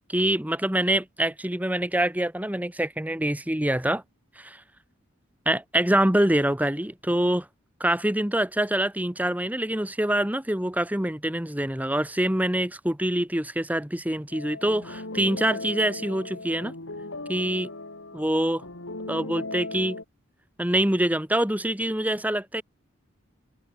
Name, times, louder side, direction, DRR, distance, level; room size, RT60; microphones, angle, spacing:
voice 1, 0.1-4.0 4.4-4.5 5.4-7.5 7.8-16.7 17.3-17.7 18.1-18.6 19.1-20.0 20.6-22.6, right 1 dB, 10° right, 1.5 m, -25 dB
sound 1, 14.3-20.0, left 2 dB, 75° left, 3.2 m, -37 dB
open air
head